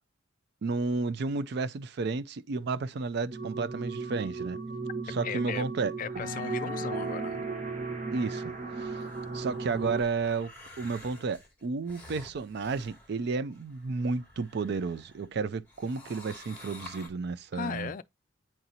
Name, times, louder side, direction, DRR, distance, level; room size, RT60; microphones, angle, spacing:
voice 1, 0.6-4.6 5.1-5.9 8.1-8.9 9.3-10.5 10.8-17.9, right 4 dB, 55° right, 0.4 m, -32 dB
sound 1, 3.3-10.0, right 3 dB, 40° right, 1.4 m, -35 dB
voice 2, 5.2-5.7 6.0-7.5 17.5-18.0, left 6 dB, 45° left, 0.4 m, -36 dB
sound 2, 9.0-15.3 15.6-17.1, left 2 dB, 10° left, 2.4 m, -51 dB
8.8 x 4.0 x 2.8 m
head